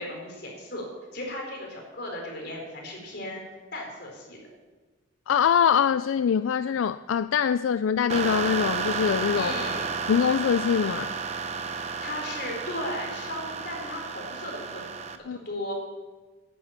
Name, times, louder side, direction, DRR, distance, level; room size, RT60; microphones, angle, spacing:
voice 1, 0.0-3.4 3.7-4.4 9.3-9.9 11.8-14.9 15.3-15.7, left 1 dB, 55° left, 4.4 m, -36 dB
voice 2, 5.3-9.5 10.1-11.1 15.3-15.4, left 7 dB, 80° left, 0.4 m, -23 dB
sound 1, 8.1-15.2, right 5 dB, 35° right, 0.8 m, -32 dB
11.5 x 9.3 x 8.8 m
head